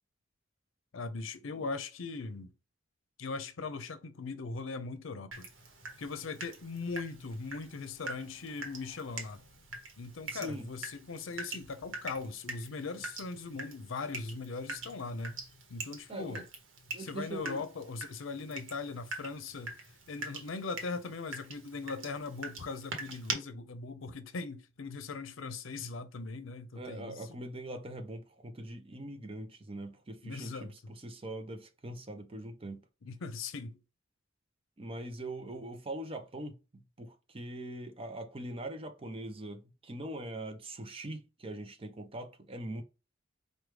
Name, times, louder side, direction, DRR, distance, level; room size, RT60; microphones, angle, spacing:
voice 1, 0.9-2.5 3.2-5.5 6.0-9.4 10.0-15.4 15.7-16.5 17.0-19.8 20.1-27.3 30.2-30.7 33.0-33.8, left 4 dB, 85° left, 0.6 m, -40 dB
Water tap faucet / Drip, 5.3-23.3, right 3 dB, 75° right, 1.0 m, -44 dB
voice 2, 10.3-10.7 16.1-16.4 16.9-17.6 26.8-32.8 34.8-42.8, right 1 dB, 30° right, 0.6 m, -42 dB
4.7 x 2.2 x 3.2 m
head